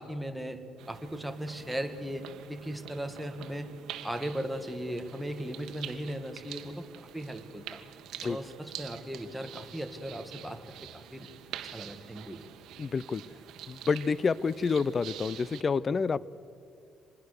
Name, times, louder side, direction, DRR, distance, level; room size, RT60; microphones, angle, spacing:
voice 1, 0.0-3.7 4.0-7.8 8.2-10.6 10.9-11.3 11.7-12.5 15.9-16.0, equal, 5° right, 6 dB, 1.8 m, -37 dB
sound 1, 0.8-15.6, right 11 dB, 80° right, 1.3 m, -46 dB
voice 2, 12.8-13.2 13.7-16.2, left 5 dB, 35° left, 21 dB, 0.5 m, -28 dB
25.5 x 21.0 x 6.7 m, 2.4 s
cardioid pair, 110°, 0 cm